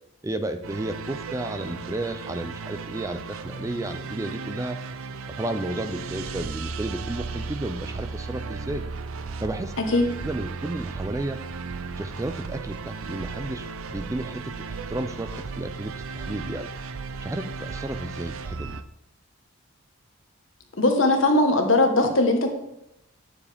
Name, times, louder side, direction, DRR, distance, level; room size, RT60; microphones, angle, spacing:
voice 1, 0.2-4.8 5.4-8.8 9.4-9.7 10.2-11.4 12.0-16.7 17.2-18.8, right 1 dB, 15° right, 9 dB, 0.3 m, -32 dB
sound 1, 0.6-18.8, right 4 dB, 80° right, 0.5 m, -35 dB
voice 2, 20.8-22.5, left 2 dB, 65° left, 4 dB, 1.3 m, -20 dB
9.5 x 7.1 x 3.5 m, 0.85 s
head